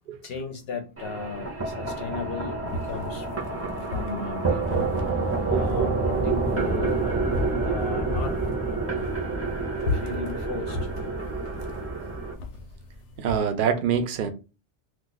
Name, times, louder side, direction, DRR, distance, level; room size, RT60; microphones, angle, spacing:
voice 1, 0.2-3.3 3.8-4.9 5.5-7.1 7.6-8.3 9.9-10.9 11.7-11.8, left 4 dB, 65° left, 0.8 m, -35 dB
sound 1, 1.0-12.3, right 3 dB, 15° right, 0.5 m, -28 dB
sound 2, 2.7-13.4, left 2 dB, 90° left, 1.0 m, -37 dB
voice 2, 13.2-14.3, right 7 dB, 55° right, 0.7 m, -24 dB
2.4 x 2.4 x 3.9 m
omnidirectional pair, 1.2 m